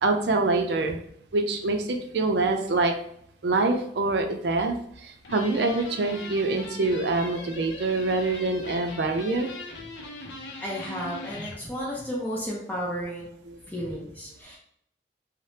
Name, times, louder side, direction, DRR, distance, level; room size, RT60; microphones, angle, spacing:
voice 1, 0.0-1.0 1.3-2.9 3.4-9.5 13.5-13.6, right 3 dB, 70° right, 4 dB, 0.4 m, -25 dB
sound 1, 5.2-11.6, left 3 dB, 90° left, 0.5 m, -40 dB
voice 2, 10.6-13.3 13.7-14.6, equal, 10° left, -4 dB, 0.6 m, -33 dB
3.2 x 2.0 x 2.8 m, 0.69 s
head